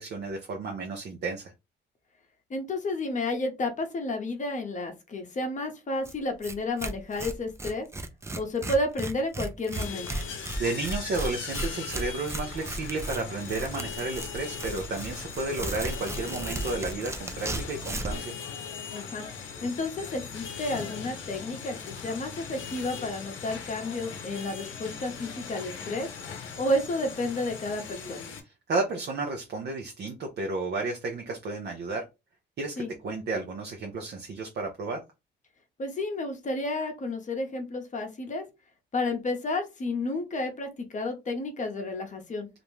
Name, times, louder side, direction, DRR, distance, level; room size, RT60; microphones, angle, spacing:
voice 1, 0.0-1.5 10.3-18.3 28.7-32.0 32.6-35.0, right 3 dB, 60° right, 2 dB, 0.6 m, -32 dB
voice 2, 2.5-7.9 8.4-10.1 18.9-26.1 26.6-28.3 32.8-32.9 35.8-38.4 38.9-42.5, left 2 dB, 40° left, 5 dB, 0.7 m, -31 dB
Tearing, 6.1-6.2 6.4-6.5 6.8-18.2, right 2 dB, 15° right, 0.4 m, -35 dB
sound 1, 9.7-28.4, left 6 dB, 80° left, 0.7 m, -39 dB
2.5 x 2.1 x 3.1 m, 0.25 s
cardioid pair, 90°, 20 cm